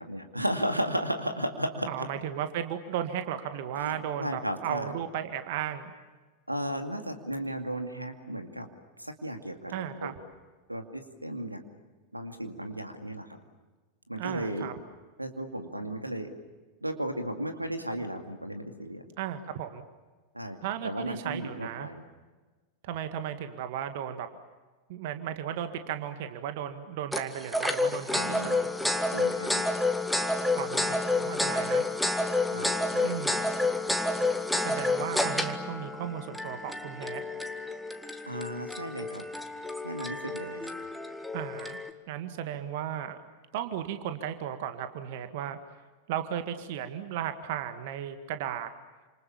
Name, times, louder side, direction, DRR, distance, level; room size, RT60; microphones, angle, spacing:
voice 1, 0.0-2.1 3.7-4.9 6.5-8.7 9.0-10.1 10.7-11.6 12.1-13.4 14.1-14.7 15.2-16.3 16.8-19.0 20.3-22.0 28.1-28.6 29.1-29.8 32.5-33.2 38.3-39.3 39.8-40.7, right 1 dB, 85° right, 6 dB, 2.3 m, -35 dB
voice 2, 1.9-5.9 9.7-10.1 14.2-14.7 19.2-19.8 20.6-21.9 22.8-24.3 24.9-28.7 30.6-31.8 33.0-33.5 34.6-37.2 41.3-41.8 42.1-43.2 43.5-45.6 46.1-48.7, right 10 dB, 50° right, 9 dB, 1.9 m, -35 dB
sound 1, 27.1-41.9, left 2 dB, ahead, 1.8 m, -30 dB
29.0 x 27.5 x 7.2 m, 1.3 s
figure-of-eight pair, 90°, 0 cm